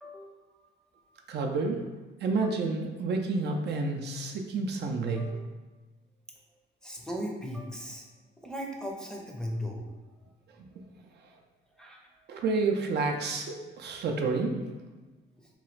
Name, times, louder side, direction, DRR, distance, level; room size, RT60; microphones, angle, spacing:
voice 1, 0.0-0.4 1.1-1.2 2.4-2.5 5.2-5.5 6.8-8.0 8.4-9.8 11.7-12.0, equal, 5° left, -1 dB, 0.5 m, -37 dB
voice 2, 1.3-1.8 2.2-5.3 12.3-14.6, right 3 dB, 60° right, 2 dB, 0.4 m, -29 dB
2.9 x 2.3 x 3.1 m, 1.2 s
cardioid pair, 90°, 20 cm